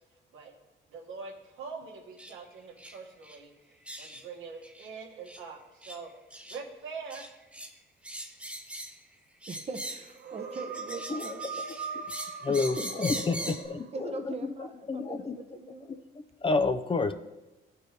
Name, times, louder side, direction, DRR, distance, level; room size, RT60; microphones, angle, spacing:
voice 1, 0.9-3.5 4.0-6.1 6.5-7.3, right 5 dB, 80° right, 1 dB, 1.4 m, -43 dB
sound 1, 2.2-2.3 2.8-3.0 3.2-3.4 3.9-4.2 4.6-4.9 5.3-5.4 5.8-6.0 6.3-6.6 7.1-7.7 8.0-9.0 9.4-10.1 10.5-13.7, right 1 dB, 5° right, 0.9 m, -41 dB
voice 2, 9.5-11.6 12.5-13.0 13.4-13.5 13.9-15.9, right 3 dB, 30° right, 7 dB, 0.7 m, -41 dB
sound 2, 10.1-14.2, right 5 dB, 55° right, 0.9 m, -41 dB
voice 3, 12.4-14.5 14.9-15.4 16.2-17.1, left 3 dB, 25° left, 8 dB, 0.5 m, -29 dB
13.0 x 4.5 x 3.3 m, 1.0 s
cardioid pair, 90°, 20 cm